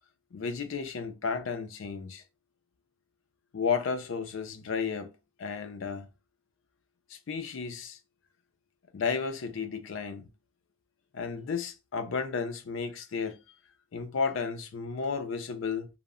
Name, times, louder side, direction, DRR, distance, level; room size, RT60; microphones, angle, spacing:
voice 1, 0.3-2.2 3.5-5.1 5.4-6.1 7.1-8.0 8.9-10.3 11.1-13.4 13.9-15.9, left 5 dB, 65° left, 0.4 m, -33 dB
2.1 x 2.0 x 3.6 m
head